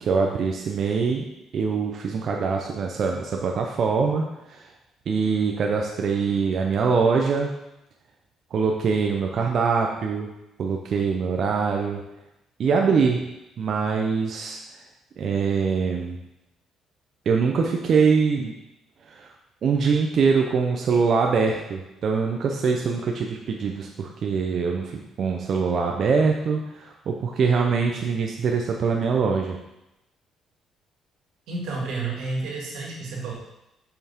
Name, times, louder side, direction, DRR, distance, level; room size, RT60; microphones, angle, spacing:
voice 1, 0.0-4.7 5.1-7.5 8.5-10.3 10.6-12.0 12.6-13.2 13.6-14.6 15.2-16.2 17.3-18.5 19.0-19.3 19.6-29.6, right 5 dB, 45° right, 1 dB, 0.6 m, -23 dB
voice 2, 31.5-33.3, right 3 dB, 90° right, -2 dB, 2.1 m, -30 dB
6.8 x 5.8 x 3.6 m, 0.91 s
cardioid pair, 150°, 0 cm